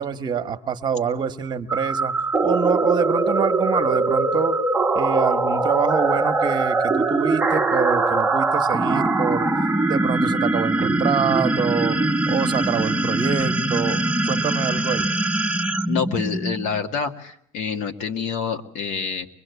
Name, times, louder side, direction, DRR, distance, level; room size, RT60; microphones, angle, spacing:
voice 1, 0.0-4.6 4.9-9.5 9.9-12.0 12.3-15.1, right 6 dB, 35° right, 8 dB, 1.3 m, -26 dB
sound 1, 1.7-16.8, right 2 dB, 10° right, 1.1 m, -22 dB
voice 2, 15.9-19.3, left 6 dB, 70° left, 6 dB, 2.1 m, -27 dB
24.5 x 21.5 x 8.2 m, 0.67 s
cardioid pair, 120°, 13 cm